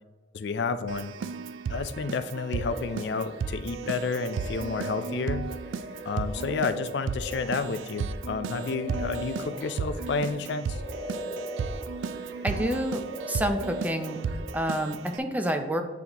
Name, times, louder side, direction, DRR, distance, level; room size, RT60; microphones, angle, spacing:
voice 1, 0.3-1.1 1.7-5.4 6.1-10.8, left 4 dB, 65° left, 12 dB, 0.4 m, -31 dB
Keyboard (musical), 0.9-15.2, right 5 dB, 85° right, 0.3 m, -34 dB
sound 1, 2.5-3.4 3.8-10.5 10.7-12.7 13.0-14.4, left 1 dB, 65° right, 1.1 m, -40 dB
voice 2, 12.4-13.0 13.3-14.2 14.5-15.8, equal, 10° right, 6 dB, 0.4 m, -28 dB
8.1 x 4.1 x 2.9 m, 1.3 s
head